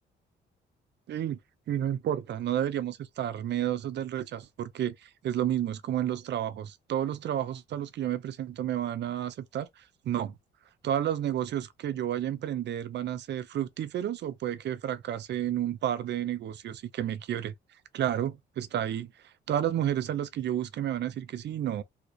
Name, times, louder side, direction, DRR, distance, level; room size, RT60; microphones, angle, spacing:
voice 1, 1.1-1.4 1.7-10.3 10.8-17.5 17.9-19.1 19.5-21.8, right 11 dB, 60° right, 0.6 m, -31 dB
3.4 x 2.4 x 3.1 m
cardioid pair, 90°, 20 cm